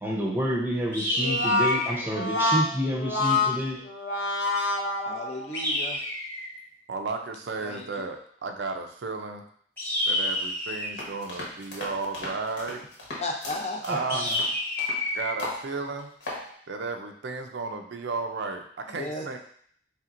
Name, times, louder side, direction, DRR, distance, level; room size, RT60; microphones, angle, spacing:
voice 1, 0.0-3.8 13.9-14.4, equal, 10° right, -2 dB, 0.6 m, -29 dB
sound 1, 0.9-2.1 5.5-6.6 9.8-11.0 14.1-15.3, left 1 dB, 10° left, 1.0 m, -29 dB
Brass instrument, 1.1-5.6, left 2 dB, 90° left, 0.6 m, -27 dB
voice 2, 5.0-6.0 7.6-7.8 13.2-13.8 18.9-19.4, left 2 dB, 35° left, 1 dB, 0.4 m, -34 dB
voice 3, 6.9-9.4 10.1-12.8 13.8-14.3 15.1-16.1 16.7-19.4, right 4 dB, 75° right, 5 dB, 0.5 m, -33 dB
sound 2, 11.0-15.0 15.4-15.6 16.0-16.4, left 2 dB, 75° left, 1.2 m, -37 dB
4.3 x 3.4 x 2.5 m, 0.62 s
head